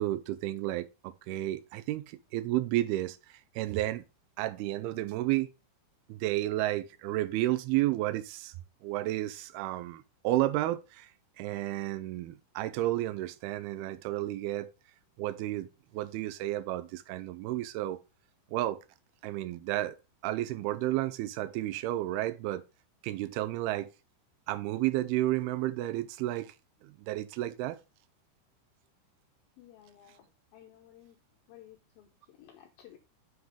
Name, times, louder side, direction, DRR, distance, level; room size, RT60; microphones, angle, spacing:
voice 1, 0.0-3.2 3.6-4.0 4.4-5.5 6.1-8.5 8.8-11.1 11.4-14.7 15.2-15.7 15.9-18.0 18.5-18.8 19.2-20.0 20.2-22.6 23.0-23.9 24.5-26.5 27.1-27.8, right 15 dB, 85° right, 2.3 m, -31 dB
voice 2, 29.6-31.2 31.5-33.0, left 12 dB, 75° left, 2.2 m, -55 dB
7.6 x 5.8 x 3.6 m
omnidirectional pair, 5.1 m